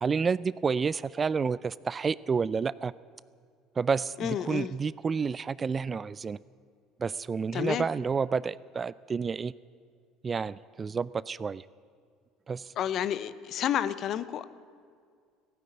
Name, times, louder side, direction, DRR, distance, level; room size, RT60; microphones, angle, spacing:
voice 1, 0.0-2.9 3.8-6.4 7.0-9.5 10.2-11.6 12.5-12.7, right 5 dB, 30° right, 21 dB, 0.3 m, -30 dB
voice 2, 4.2-4.7 7.5-7.9 12.8-14.4, left 10 dB, 55° left, 15 dB, 0.6 m, -30 dB
16.0 x 9.2 x 9.6 m, 2.1 s
hypercardioid pair, 70°, 0 cm